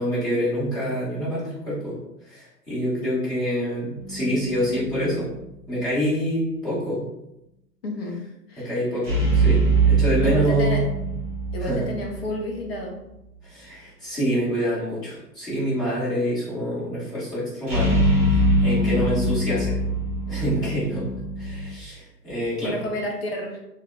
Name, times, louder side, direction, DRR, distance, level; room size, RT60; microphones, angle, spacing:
voice 1, 0.0-2.0 2.2-5.3 5.7-7.0 8.6-10.9 11.6-11.9 13.4-18.0 18.3-19.8 20.3-21.1 21.4-22.8, equal, 10° left, -12 dB, 1.0 m, -26 dB
sound 1, 4.0-4.9 9.0-12.7 17.7-21.7, right 2 dB, 20° right, 0.7 m, -22 dB
voice 2, 7.8-8.2 8.5-8.7 10.2-10.8 11.5-13.0 18.8-19.0 22.6-23.6, left 1 dB, 40° left, 0 dB, 0.4 m, -30 dB
2.7 x 2.1 x 2.3 m, 0.88 s
figure-of-eight pair, 125°, 49 cm